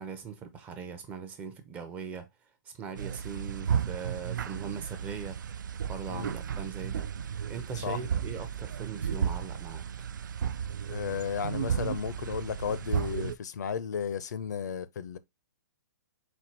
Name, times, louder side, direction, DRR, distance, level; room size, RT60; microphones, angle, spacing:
voice 1, 0.0-2.3 2.7-5.4 5.8-7.1 7.5-9.8, right 6 dB, 15° right, 0.5 m, -40 dB
sound 1, 3.0-13.4, right 8 dB, 80° right, 0.4 m, -33 dB
voice 2, 10.9-15.2, left 7 dB, 65° left, 0.5 m, -34 dB
4.3 x 2.3 x 4.4 m
hypercardioid pair, 160°, 10 cm